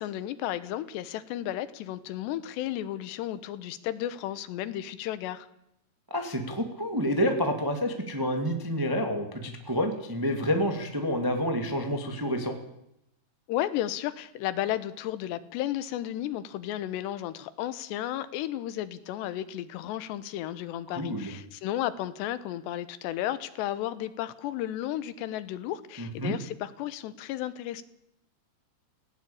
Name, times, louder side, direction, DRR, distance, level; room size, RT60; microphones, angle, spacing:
voice 1, 0.0-5.5 13.5-27.8, left 13 dB, 90° left, 14 dB, 3.2 m, -33 dB
voice 2, 6.1-12.5 20.9-21.3 26.0-26.3, equal, 25° right, 5 dB, 0.4 m, -28 dB
19.0 x 17.0 x 8.7 m, 0.80 s
omnidirectional pair, 4.8 m